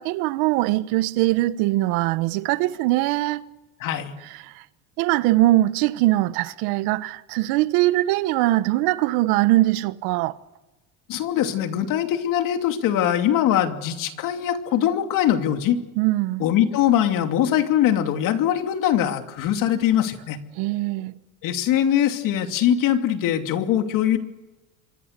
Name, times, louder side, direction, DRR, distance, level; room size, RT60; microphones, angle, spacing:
voice 1, 0.0-3.5 4.4-4.6 5.0-10.4 16.0-16.4 20.6-21.2, right 17 dB, 80° right, 1.2 m, -21 dB
voice 2, 3.8-4.1 11.1-15.8 16.4-20.4 21.4-24.2, left 10 dB, 60° left, 2.8 m, -22 dB
27.0 x 23.0 x 6.8 m
cardioid pair, 125°, 36 cm